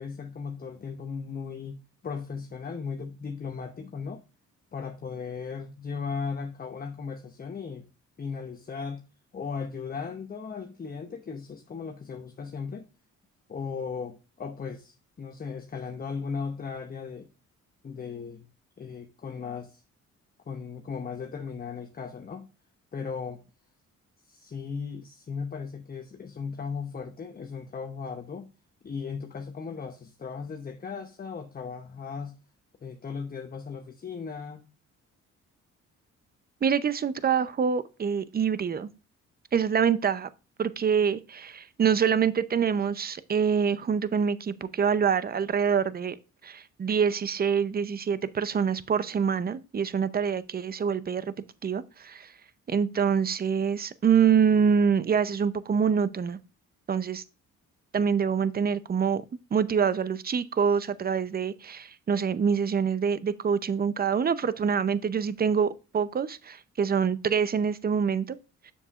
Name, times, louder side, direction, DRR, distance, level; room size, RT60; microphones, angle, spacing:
voice 1, 0.0-4.2 4.7-7.9 8.2-9.0 9.3-12.9 13.5-17.3 17.8-18.5 18.8-19.8 20.5-22.5 22.9-23.4 24.3-28.5 28.8-32.3 32.8-34.6, left 5 dB, 30° left, 0.8 m, -37 dB
voice 2, 36.6-38.9 39.5-40.3 40.6-46.2 46.4-51.3 51.6-52.3 52.7-56.4 56.9-57.2 57.9-59.2 59.5-68.4, right 7 dB, 30° right, 0.6 m, -25 dB
7.2 x 6.9 x 2.4 m
cardioid pair, 90°, 30 cm